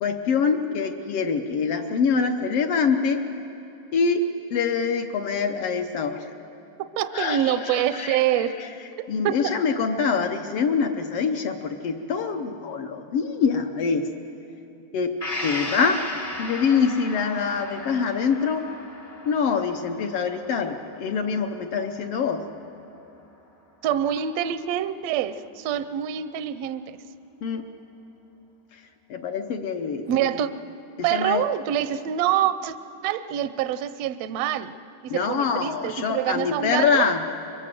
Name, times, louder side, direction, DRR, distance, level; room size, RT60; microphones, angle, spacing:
voice 1, 0.0-3.2 3.9-6.3 7.0-8.7 9.1-14.1 14.9-15.1 15.4-16.0 16.4-18.7 19.2-22.4 27.4-27.7 28.7-30.4 31.0-31.4 35.1-37.2, left 5 dB, 65° left, 6 dB, 1.6 m, -25 dB
voice 2, 7.0-8.5 9.2-9.5 23.8-27.0 30.1-30.5 31.0-32.8 33.0-34.7 35.0-37.0, right 11 dB, 75° right, 12 dB, 1.5 m, -25 dB
Gong, 15.2-22.8 23.2-23.3, left 2 dB, 45° left, 0.4 m, -37 dB
24.0 x 22.5 x 7.6 m, 2.9 s
omnidirectional pair, 3.5 m